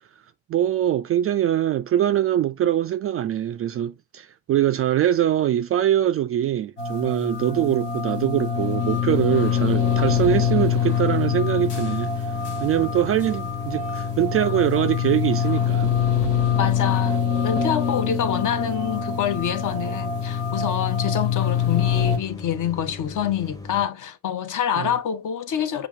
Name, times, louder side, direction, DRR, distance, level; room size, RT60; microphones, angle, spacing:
voice 1, 0.5-12.1 12.6-15.9 24.8-24.9, right 11 dB, 30° right, 0.4 m, -23 dB
sound 1, 6.8-22.2, left 7 dB, 80° left, 0.9 m, -24 dB
sound 2, 8.5-23.9, left 3 dB, 10° left, 0.7 m, -38 dB
voice 2, 16.6-25.9, left 9 dB, 40° left, 0.7 m, -26 dB
6.9 x 2.5 x 2.6 m
figure-of-eight pair, 45°, 47 cm